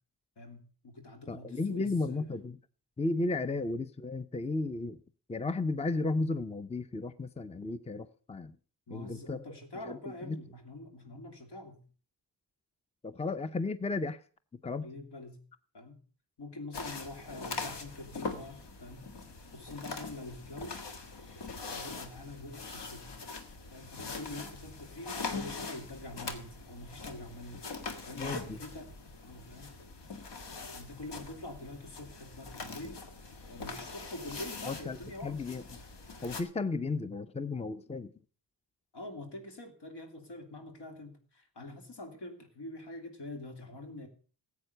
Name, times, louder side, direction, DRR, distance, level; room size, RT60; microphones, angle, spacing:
voice 1, 0.4-2.3 3.4-3.5 8.9-11.8 14.8-15.4 15.7-16.0 16.4-19.0 19.5-20.8 21.3-23.1 23.7-28.9 29.2-29.8 30.7-33.0 33.5-35.5 38.9-44.1, left 2 dB, 75° left, 2.9 m, -45 dB
voice 2, 1.3-2.6 3.0-5.0 5.3-8.6 8.9-9.4 9.9-10.0 10.2-10.4 13.0-14.2 14.6-14.9 28.1-28.6 34.7-35.0 35.2-35.6 36.2-38.1, left 3 dB, 15° left, 0.6 m, -34 dB
sound 1, 16.7-36.4, left 3 dB, 90° left, 1.7 m, -42 dB
14.5 x 8.2 x 6.6 m
cardioid pair, 75°, 41 cm